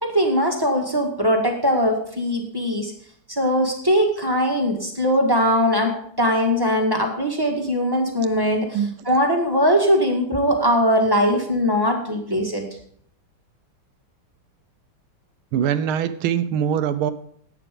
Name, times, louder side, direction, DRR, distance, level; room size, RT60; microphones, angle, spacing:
voice 1, 0.0-2.9 3.3-8.8 9.1-12.6, equal, 10° right, 1 dB, 1.7 m, -20 dB
voice 2, 15.5-17.1, right 9 dB, 80° right, 12 dB, 1.6 m, -22 dB
11.0 x 8.8 x 5.2 m, 0.65 s
omnidirectional pair, 2.3 m